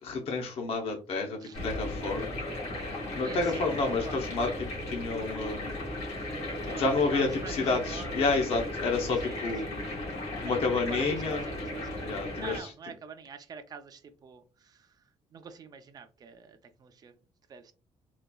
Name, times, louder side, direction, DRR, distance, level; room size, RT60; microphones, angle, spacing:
voice 1, 0.0-2.4 3.2-5.8 6.8-9.8 10.4-11.4 12.1-12.7, left 3 dB, 55° left, 3 dB, 0.6 m, -30 dB
sound 1, 1.5-12.6, left 1 dB, 80° left, 1.7 m, -36 dB
voice 2, 3.2-4.5 6.6-8.3 9.2-9.9 10.4-15.0 15.3-17.1 17.5-17.7, right 5 dB, 35° right, 9 dB, 0.4 m, -45 dB
4.0 x 2.3 x 2.2 m, 0.33 s
cardioid pair, 155°, 12 cm